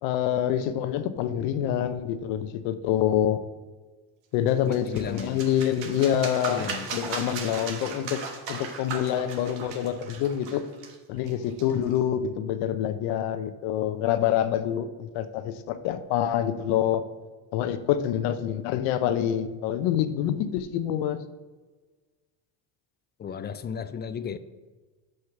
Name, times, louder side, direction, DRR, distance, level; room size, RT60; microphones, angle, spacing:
voice 1, 0.0-3.4 4.3-8.2 8.5-10.6 11.1-17.0 17.5-21.2, left 10 dB, 85° left, 11 dB, 0.7 m, -26 dB
sound 1, 4.5-12.0, right 5 dB, 70° right, 1.4 m, -37 dB
voice 2, 4.6-5.4 6.5-6.9 23.2-24.4, left 7 dB, 25° left, 13 dB, 0.4 m, -34 dB
6.4 x 5.7 x 5.8 m, 1.3 s
cardioid pair, 100°, 45 cm